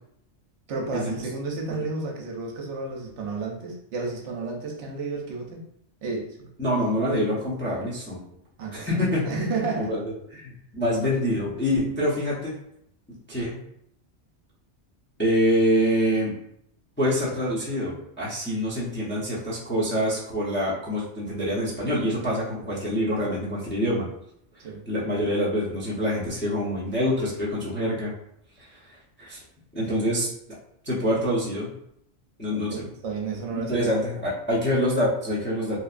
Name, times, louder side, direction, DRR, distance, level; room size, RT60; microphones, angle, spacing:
voice 1, 0.7-5.6 6.0-6.5 8.6-8.9 9.2-9.9 24.6-24.8 32.7-34.0, right 3 dB, 75° right, 0 dB, 0.9 m, -32 dB
voice 2, 6.6-8.2 8.7-9.3 9.8-10.0 10.3-12.5 13.3-13.6 15.2-16.3 17.0-24.1 24.9-28.1 28.7-28.8 29.2-29.4 29.7-30.3 30.8-31.7 32.4-32.9 33.5-35.8, equal, 15° left, -7 dB, 0.4 m, -25 dB
2.8 x 2.2 x 2.4 m, 0.73 s
omnidirectional pair, 1.2 m